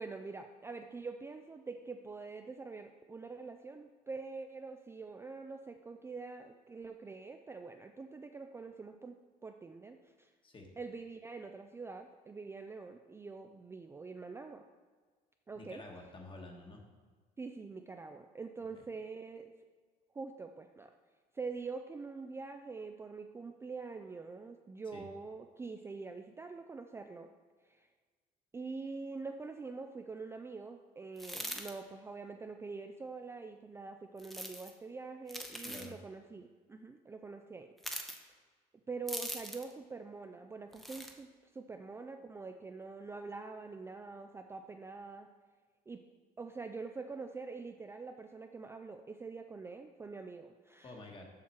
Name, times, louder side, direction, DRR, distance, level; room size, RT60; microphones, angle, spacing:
voice 1, 0.0-9.2 9.4-10.3 10.8-14.6 15.5-15.8 17.4-19.5 20.1-20.9 21.3-27.3 27.6-27.9 28.5-37.7 38.9-45.3 45.9-46.0 46.4-51.0, right 4 dB, 15° right, 5 dB, 0.3 m, -45 dB
voice 2, 15.5-16.8 24.9-25.0 35.6-36.0 50.8-51.3, left 2 dB, 30° left, 2 dB, 1.3 m, -49 dB
sound 1, 31.2-31.7 34.2-34.7 35.3-35.9 37.8-38.2 39.1-39.7 40.7-41.1, equal, ahead, 0.7 m, -42 dB
7.2 x 5.9 x 4.4 m, 1.5 s
cardioid pair, 110°, 17 cm